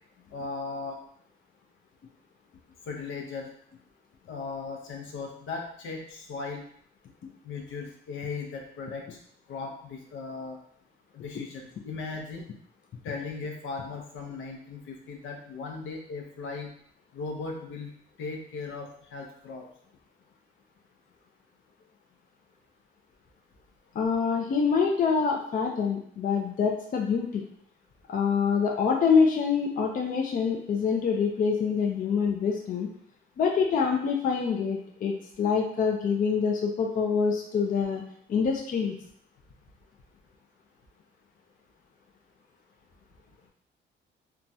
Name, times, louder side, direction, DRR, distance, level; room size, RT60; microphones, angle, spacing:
voice 1, 0.3-1.0 2.9-3.5 4.3-6.6 7.4-9.2 9.5-10.6 11.1-12.4 13.0-16.7 17.1-17.9 18.2-19.7, left 4 dB, 80° left, 1 dB, 0.7 m, -37 dB
voice 2, 23.9-27.4 28.1-32.9 33.4-38.0 38.3-38.9, left 6 dB, 45° left, 2 dB, 0.4 m, -25 dB
3.0 x 2.3 x 2.6 m, 0.64 s
cardioid pair, 90°, 20 cm